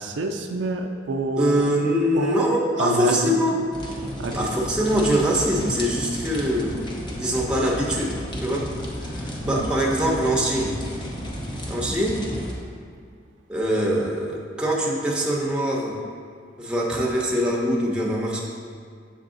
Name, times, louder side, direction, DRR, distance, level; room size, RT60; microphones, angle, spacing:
voice 1, 0.0-1.7 2.1-3.4 4.2-4.3 9.4-9.7, right 3 dB, 65° right, 3 dB, 0.4 m, -27 dB
voice 2, 1.4-3.6 4.3-6.8 7.2-8.1 8.4-8.7 9.0-10.8 11.7-12.3 13.5-16.0 16.6-18.4, equal, 5° right, -3 dB, 0.7 m, -23 dB
sound 1, 3.7-12.5, equal, 25° left, 0.7 m, -33 dB
6.8 x 3.9 x 3.8 m, 2.1 s
head